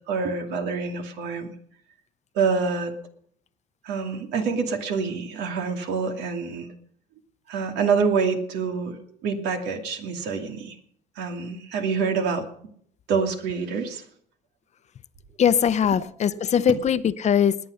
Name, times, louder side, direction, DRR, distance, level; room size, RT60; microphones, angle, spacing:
voice 1, 0.1-1.5 2.3-2.9 3.8-6.7 7.5-10.8 11.2-12.4 13.1-14.0 16.4-16.5, right 5 dB, 85° right, 2.5 m, -26 dB
voice 2, 15.4-17.6, left 8 dB, 40° left, 0.7 m, -21 dB
20.0 x 9.0 x 6.5 m
cardioid pair, 110°, 17 cm